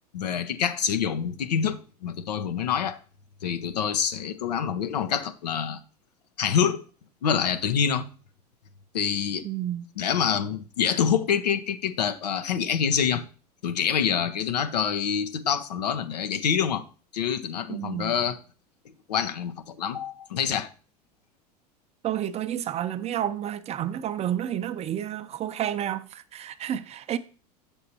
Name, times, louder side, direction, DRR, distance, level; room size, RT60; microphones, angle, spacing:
voice 1, 0.1-3.0 3.4-5.8 6.4-6.8 7.2-8.1 8.9-9.5 10.0-13.2 13.6-16.8 17.1-18.4 19.1-20.7, left 8 dB, 80° left, 0.6 m, -26 dB
voice 2, 9.4-9.9 17.7-18.2 22.0-27.2, right 11 dB, 30° right, 0.5 m, -30 dB
7.0 x 6.6 x 2.8 m
hypercardioid pair, 80°, 21 cm